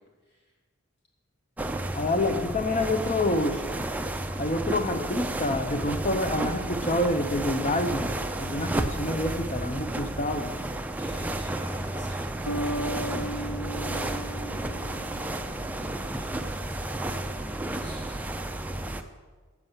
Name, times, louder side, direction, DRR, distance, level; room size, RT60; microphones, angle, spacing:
sound 1, 1.6-19.0, right 1 dB, 5° right, 0.3 m, -32 dB
voice 1, 1.9-3.6 4.4-8.1 8.4-10.5, left 1 dB, 30° left, 8 dB, 0.7 m, -27 dB
voice 2, 11.0-12.2 12.6-13.6 15.8-16.7 17.8-18.2, left 1 dB, 50° left, -3 dB, 2.0 m, -52 dB
Bass guitar, 12.5-16.0, equal, 80° left, 0.6 m, -35 dB
8.2 x 6.6 x 7.3 m, 1.4 s
head